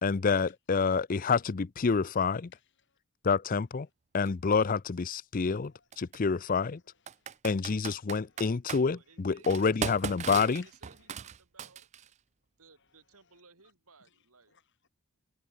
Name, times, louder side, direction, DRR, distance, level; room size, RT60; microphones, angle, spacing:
voice 1, 0.0-2.5 3.2-3.9 4.1-6.8 7.4-9.0 9.2-10.6, left 5 dB, 40° left, 0.5 m, -28 dB
voice 2, 2.5-3.0 5.7-5.9 6.7-7.4 8.0-8.4 10.6-11.1 13.2-13.4 14.1-14.2 14.5-14.9, left 9 dB, 55° left, 3.6 m, -65 dB
Computer keyboard, 4.2-4.3 5.9-6.2 7.1-8.8 9.4-12.1, right 7 dB, 30° right, 0.4 m, -38 dB
voice 3, 8.8-11.9 12.6-14.6, right 4 dB, 80° right, 5.3 m, -60 dB
head